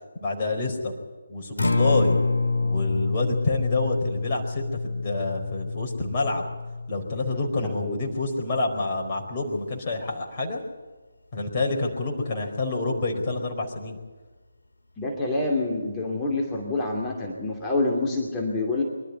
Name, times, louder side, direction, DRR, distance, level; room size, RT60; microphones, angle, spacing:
voice 1, 0.2-0.9 1.3-2.2 2.6-6.5 6.9-10.6 11.3-14.0, left 2 dB, 30° left, 1 dB, 4.5 m, -28 dB
Acoustic guitar, 1.4-9.6, left 3 dB, 65° left, 2.6 m, -28 dB
voice 2, 7.6-8.0 15.0-18.8, left 2 dB, 15° left, -1 dB, 2.7 m, -27 dB
25.0 x 12.5 x 9.5 m, 1.3 s
figure-of-eight pair, 150°, 0 cm